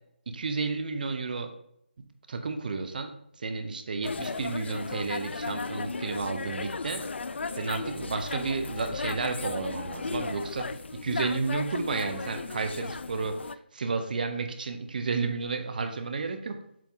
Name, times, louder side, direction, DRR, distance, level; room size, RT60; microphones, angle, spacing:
voice 1, 0.3-1.5 2.3-7.0 7.5-10.8 11.0-16.6, right 4 dB, 45° right, 7 dB, 0.7 m, -32 dB
sound 1, 4.0-13.5, left 4 dB, 75° left, 0.4 m, -35 dB
7.5 x 5.3 x 3.7 m, 0.73 s
figure-of-eight pair, 165°, 6 cm